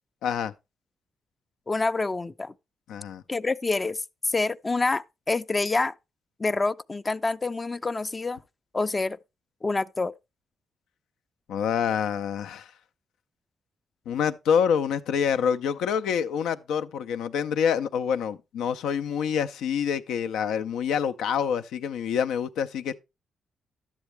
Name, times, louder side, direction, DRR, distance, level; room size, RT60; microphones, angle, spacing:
voice 1, 0.2-0.5 2.9-3.2 11.5-12.7 14.1-23.0, left 7 dB, 85° left, 0.5 m, -26 dB
voice 2, 1.7-2.5 3.3-5.9 6.4-8.4 8.7-9.2 9.6-10.1, left 3 dB, 30° left, 0.4 m, -27 dB
11.5 x 7.2 x 3.1 m
supercardioid pair, 65°, 0 cm